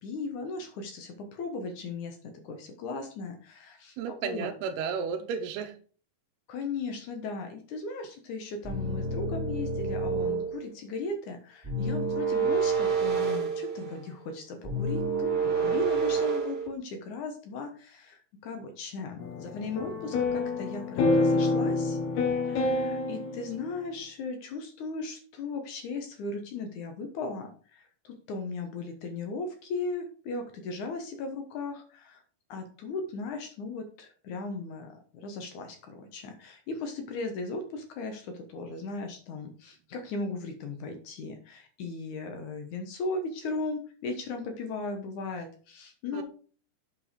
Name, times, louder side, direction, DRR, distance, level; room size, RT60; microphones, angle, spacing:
voice 1, 0.0-4.0 4.2-4.5 6.5-22.0 22.4-32.2 32.5-46.2, left 3 dB, 65° left, 5 dB, 2.1 m, -37 dB
voice 2, 4.0-5.8 46.1-46.2, right 6 dB, 85° right, 2 dB, 2.8 m, -33 dB
sound 1, 8.6-10.6 11.6-14.0 14.6-16.7, right 4 dB, 25° right, 2.5 m, -28 dB
sound 2, 19.2-23.7, left 3 dB, 85° left, 3.6 m, -27 dB
8.2 x 4.6 x 5.0 m, 0.41 s
omnidirectional pair, 4.5 m